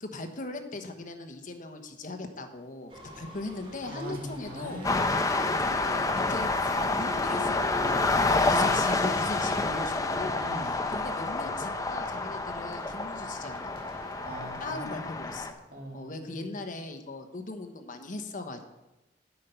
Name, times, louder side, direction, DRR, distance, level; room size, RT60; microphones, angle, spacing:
voice 1, 0.0-4.8 5.3-13.7 14.6-15.6 15.9-18.6, left 2 dB, 50° left, 6 dB, 1.1 m, -39 dB
sound 1, 2.9-14.7, left 2 dB, 30° right, 2.2 m, -46 dB
voice 2, 3.9-5.2 8.4-8.7 10.4-10.7 14.2-15.2 15.7-16.5, equal, 55° right, -1 dB, 2.4 m, -40 dB
sound 2, 4.8-15.5, left 3 dB, 20° left, 0.6 m, -28 dB
9.2 x 8.3 x 5.6 m, 1.0 s
head